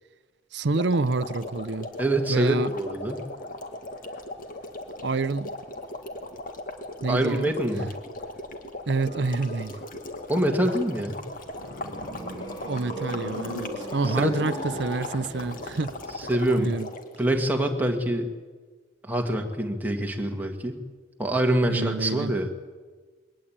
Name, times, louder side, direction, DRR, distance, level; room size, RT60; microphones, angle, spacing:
voice 1, 0.5-1.9 2.3-2.7 5.0-5.5 7.0-7.5 7.8-7.9 8.9-9.8 12.6-15.9 16.6-16.9 21.7-22.3, right 3 dB, 65° right, 0.6 m, -28 dB
sound 1, 0.7-17.2, left 2 dB, 45° left, 2.0 m, -38 dB
sound 2, 1.1-14.1, left 2 dB, 85° left, 4.1 m, -53 dB
voice 2, 2.0-3.2 7.1-7.9 10.3-11.2 14.2-14.3 16.3-16.7 17.2-18.3 19.0-20.8 21.2-22.5, right 1 dB, 10° right, 1.9 m, -25 dB
sound 3, 11.2-16.5, equal, 25° left, 5.1 m, -37 dB
21.5 x 18.5 x 8.8 m
head